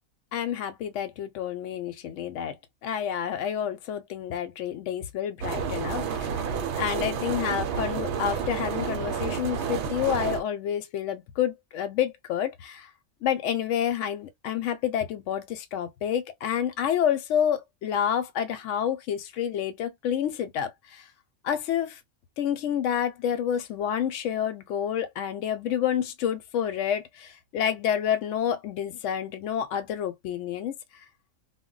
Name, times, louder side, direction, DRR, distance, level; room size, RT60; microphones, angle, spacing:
voice 1, 0.3-2.6 2.8-6.4 6.8-12.9 13.2-21.0 21.4-22.0 22.4-30.7, left 9 dB, 75° left, 0.9 m, -29 dB
sound 1, 5.4-10.4, right 7 dB, 65° right, 0.8 m, -30 dB
2.1 x 2.1 x 3.7 m
omnidirectional pair, 1.3 m